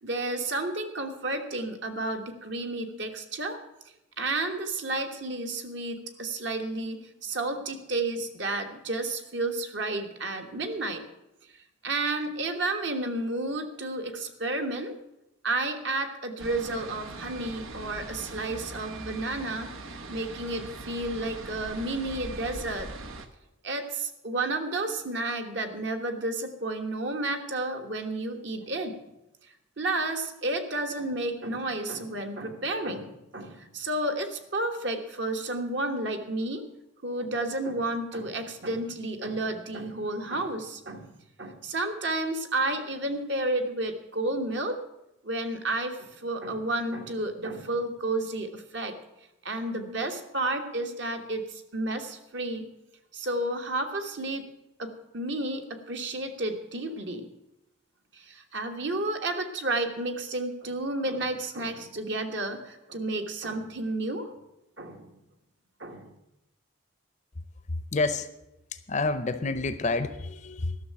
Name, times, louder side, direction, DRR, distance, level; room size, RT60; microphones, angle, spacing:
voice 1, 0.0-3.6 4.2-11.0 11.8-15.0 15.4-19.7 20.1-22.9 23.6-29.0 29.8-36.6 37.0-41.1 41.4-44.8 45.2-48.9 49.4-52.7 53.1-54.4 54.8-57.3 58.1-64.3 64.8-65.1 65.8-66.1, right 2 dB, 60° right, 5 dB, 1.3 m, -31 dB
sound 1, 16.4-23.3, right 3 dB, 85° right, 1.1 m, -41 dB
voice 2, 67.7-68.3 68.7-70.8, left 3 dB, 35° left, 12 dB, 0.6 m, -29 dB
12.5 x 6.6 x 8.6 m, 0.90 s
head